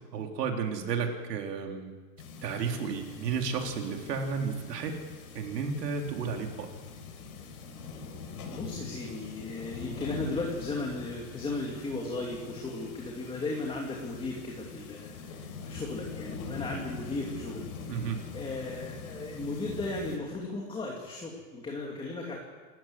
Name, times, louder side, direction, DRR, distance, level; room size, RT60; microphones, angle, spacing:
voice 1, 0.1-1.9 2.4-4.9 5.3-6.7 17.9-18.2, right 5 dB, 85° right, 2 dB, 4.0 m, -32 dB
sound 1, 2.2-20.2, left 5 dB, 65° left, 5.2 m, -43 dB
voice 2, 8.4-22.4, left 2 dB, 10° left, -1 dB, 2.6 m, -36 dB
28.5 x 14.0 x 7.8 m, 1.4 s
supercardioid pair, 150°, 47 cm